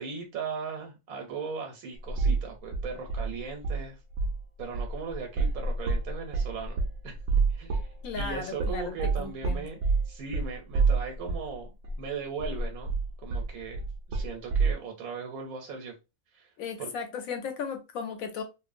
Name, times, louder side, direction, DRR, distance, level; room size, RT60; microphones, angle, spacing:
voice 1, 0.0-4.0 4.6-7.2 7.5-7.8 8.2-9.8 10.0-13.8 14.1-15.9 16.3-16.5 16.8-16.9, right 5 dB, 85° right, 1.1 m, -38 dB
sound 1, 2.1-2.5 2.7-3.8 4.1-4.4 4.7-11.5 11.8-12.0 12.4-14.7, right 4 dB, 65° right, 0.8 m, -28 dB
voice 2, 8.0-9.7 16.6-18.4, left 6 dB, 80° left, 1.0 m, -36 dB
2.9 x 2.1 x 2.4 m
omnidirectional pair, 1.5 m